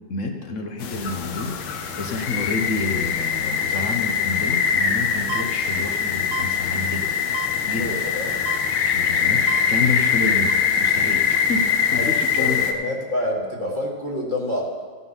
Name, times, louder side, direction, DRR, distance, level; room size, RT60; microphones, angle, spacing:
voice 1, 0.1-7.1 7.6-8.0 8.9-12.7, left 3 dB, 50° left, 4 dB, 0.9 m, -29 dB
sound 1, 0.8-12.7, left 7 dB, 85° left, 1.8 m, -23 dB
sound 2, 5.3-5.4 6.3-6.4 7.3-7.5 8.5-8.6 9.5-9.6 10.5-10.6, right 16 dB, 85° right, 0.8 m, -31 dB
voice 2, 7.8-8.3 10.2-10.3 11.9-14.7, left 1 dB, 25° left, -2 dB, 1.5 m, -28 dB
16.5 x 6.1 x 5.6 m, 1.5 s
omnidirectional pair, 2.3 m